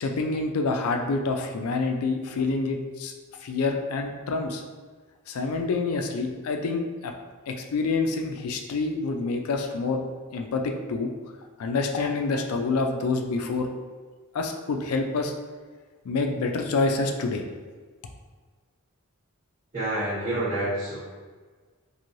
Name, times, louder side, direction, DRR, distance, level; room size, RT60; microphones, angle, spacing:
voice 1, 0.0-3.1 3.4-4.6 5.3-7.1 7.5-10.0 10.3-11.1 11.6-13.7 14.3-15.3 16.0-17.4, left 3 dB, 90° left, 4 dB, 0.4 m, -27 dB
voice 2, 19.7-21.1, right 1 dB, 40° right, -14 dB, 1.2 m, -28 dB
3.0 x 2.6 x 2.6 m, 1.4 s
head